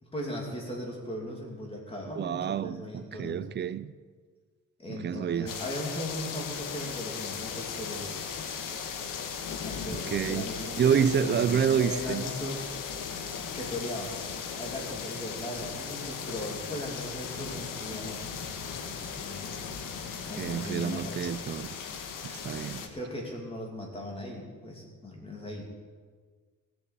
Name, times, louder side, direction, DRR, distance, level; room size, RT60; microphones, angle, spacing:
voice 1, 0.0-3.4 4.8-8.5 9.6-12.7 13.5-18.2 19.0-19.5 20.2-21.4 22.8-25.8, left 1 dB, 15° left, 2.7 m, -38 dB
voice 2, 2.1-3.9 4.9-5.5 9.9-10.5 10.8-12.2 20.4-21.7 22.2-22.8, right 8 dB, 35° right, 0.4 m, -28 dB
sound 1, 5.5-22.9, left 6 dB, 90° left, 1.4 m, -37 dB
16.0 x 7.1 x 8.4 m
cardioid pair, 170°, 32 cm